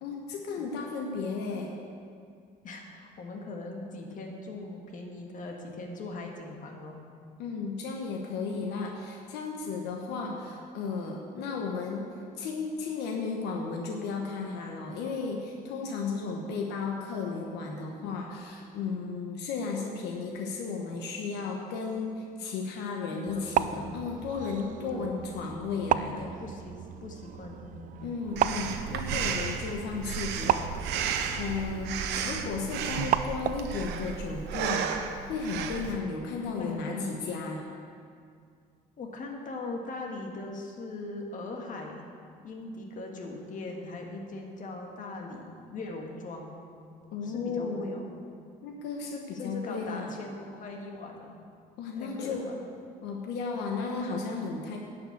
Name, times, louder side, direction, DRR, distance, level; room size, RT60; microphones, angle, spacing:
voice 1, 0.0-1.7 7.4-12.1 12.4-26.3 28.0-32.0 32.2-34.9 35.3-37.7 47.1-47.9 48.6-50.1 51.8-52.5 53.0-54.8, left 4 dB, 85° left, 1 dB, 1.1 m, -34 dB
voice 2, 2.6-7.0 10.1-10.4 18.0-18.5 23.1-23.9 24.9-25.2 26.1-27.9 36.6-37.2 39.0-42.1 42.4-46.5 47.0-48.0 49.3-51.4 52.0-52.6 54.0-54.5, left 2 dB, 50° left, 1 dB, 1.7 m, -40 dB
sound 1, 23.3-33.8, right 10 dB, 50° right, 0.4 m, -34 dB
Breathing, 28.4-36.0, right 7 dB, 85° right, 0.8 m, -33 dB
10.5 x 5.8 x 8.1 m, 2.3 s
cardioid pair, 110°, 17 cm